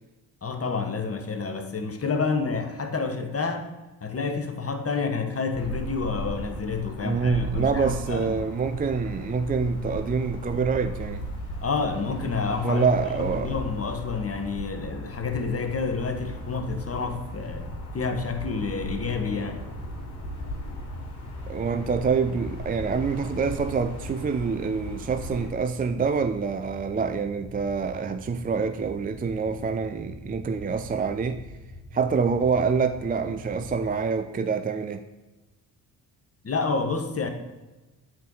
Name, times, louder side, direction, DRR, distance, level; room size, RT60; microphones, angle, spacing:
voice 1, 0.4-3.7 4.0-8.5 11.6-19.7 36.4-37.3, left 4 dB, 30° left, 6 dB, 1.4 m, -29 dB
sound 1, 5.5-25.5, equal, 75° left, 2.7 m, -37 dB
voice 2, 7.0-11.3 12.6-13.5 21.5-31.4 31.9-35.0, right 5 dB, 20° right, 9 dB, 0.4 m, -26 dB
sound 2, 15.5-34.0, left 1 dB, 5° left, 2.4 m, -44 dB
8.2 x 4.5 x 6.4 m, 1.1 s
hypercardioid pair, 45°, 47 cm